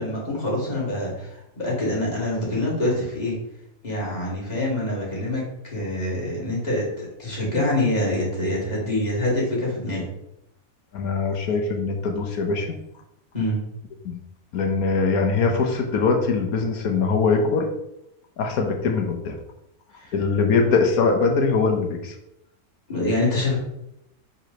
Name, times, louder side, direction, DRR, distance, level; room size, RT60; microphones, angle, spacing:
voice 1, 0.0-3.4 3.8-10.1 13.3-13.6 20.0-20.1 22.9-23.6, left 1 dB, 30° left, -6 dB, 2.4 m, -25 dB
voice 2, 10.9-12.8 14.0-14.2 14.5-17.7 18.4-19.4 20.1-22.1, left 4 dB, 75° left, 4 dB, 1.3 m, -22 dB
4.7 x 3.9 x 5.1 m, 0.83 s
omnidirectional pair, 1.5 m